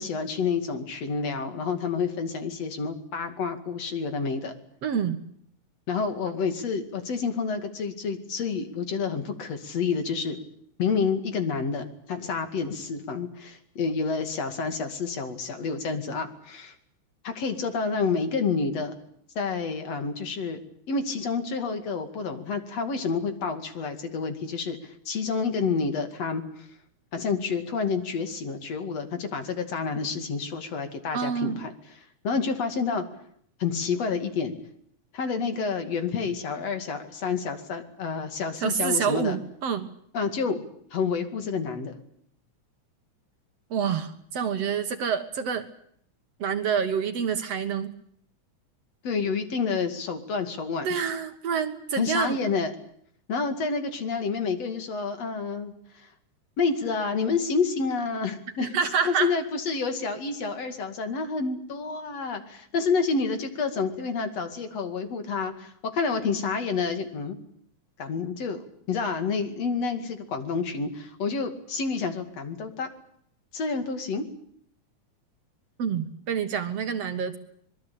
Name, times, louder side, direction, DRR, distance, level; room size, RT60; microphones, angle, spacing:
voice 1, 0.0-4.5 5.9-10.4 10.8-16.7 17.2-19.0 19.3-20.6 20.9-26.7 27.1-31.7 32.2-33.0 33.6-34.5 35.1-39.4 40.1-40.6 40.9-42.0 49.0-50.9 52.0-52.7 53.3-56.1 56.6-67.4 68.0-72.9 73.5-74.2, left 5 dB, 55° left, 7 dB, 3.4 m, -29 dB
voice 2, 4.8-5.2 31.1-31.6 38.6-39.9 43.7-45.7 46.4-47.9 50.8-52.4 58.6-59.3 75.8-77.4, right 7 dB, 60° right, 9 dB, 2.4 m, -27 dB
25.0 x 22.0 x 8.5 m, 0.66 s
omnidirectional pair, 3.5 m